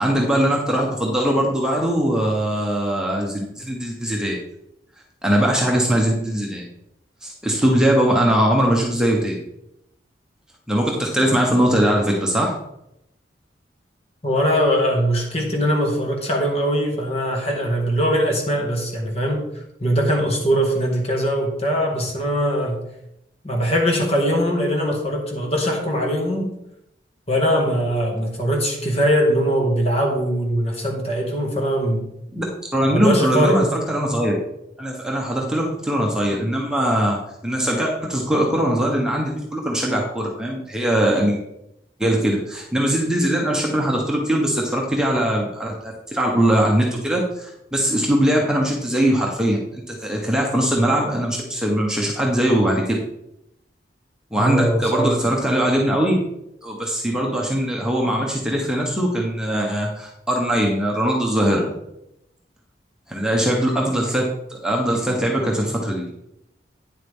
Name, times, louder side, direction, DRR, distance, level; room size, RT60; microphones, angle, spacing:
voice 1, 0.0-4.4 5.2-6.6 7.2-9.4 10.7-12.5 32.3-32.4 32.7-34.3 34.8-37.2 37.4-41.4 42.0-53.0 54.3-56.2 56.6-61.7 63.1-66.1, right 1 dB, 5° right, -2 dB, 1.1 m, -21 dB
voice 2, 14.2-19.5 19.8-22.8 23.4-26.5 27.3-32.1 32.9-33.7 54.3-55.2, equal, 35° left, 1 dB, 1.9 m, -21 dB
9.5 x 7.5 x 3.6 m, 0.82 s
head